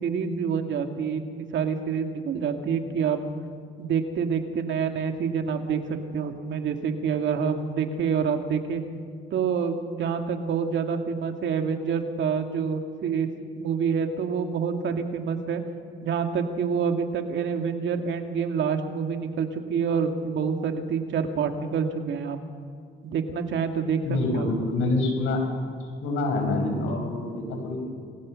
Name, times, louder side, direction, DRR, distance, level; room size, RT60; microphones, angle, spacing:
voice 1, 0.0-3.2 3.8-8.8 9.3-13.3 13.6-15.6 16.0-22.4 23.0-24.0 24.3-24.5, right 6 dB, 70° right, 5 dB, 2.3 m, -27 dB
voice 2, 24.0-25.4 26.0-27.8, left 2 dB, 90° left, 3 dB, 5.8 m, -26 dB
28.0 x 20.5 x 6.5 m, 2.1 s
cardioid pair, 90°, 20 cm